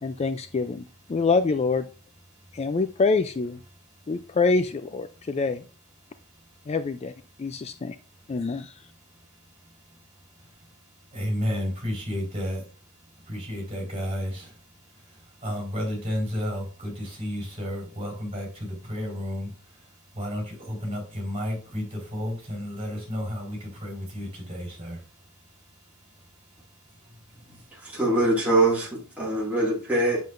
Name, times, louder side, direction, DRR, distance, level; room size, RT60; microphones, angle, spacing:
voice 1, 0.0-1.9 2.5-3.6 4.1-5.6 6.7-7.1 7.4-8.0 8.3-8.7, left 4 dB, 30° left, 10 dB, 0.3 m, -25 dB
voice 2, 11.1-12.6 13.3-14.5 15.4-19.5 20.2-25.0, equal, 25° right, 0 dB, 4.4 m, -31 dB
voice 3, 27.8-30.2, right 2 dB, 5° right, -7 dB, 2.2 m, -23 dB
7.6 x 7.3 x 2.5 m, 0.36 s
head